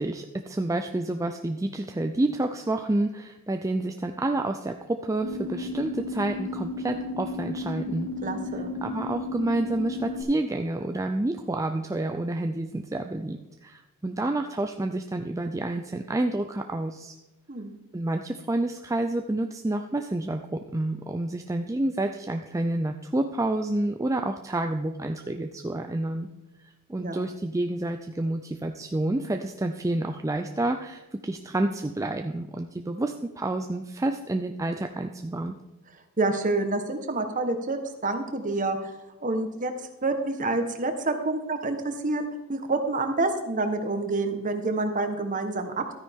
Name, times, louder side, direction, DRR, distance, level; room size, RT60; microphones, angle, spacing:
voice 1, 0.0-8.1 8.8-17.2 17.9-26.3 26.9-35.6, right 2 dB, 15° right, 6 dB, 0.4 m, -29 dB
sound 1, 5.2-10.2, left 2 dB, 60° right, 2.0 m, -33 dB
voice 2, 8.2-8.7 17.5-17.7 27.0-27.2 36.2-38.9 39.2-39.7 40.0-45.9, right 2 dB, 35° right, 7 dB, 1.2 m, -28 dB
13.0 x 9.7 x 3.6 m, 1.1 s
head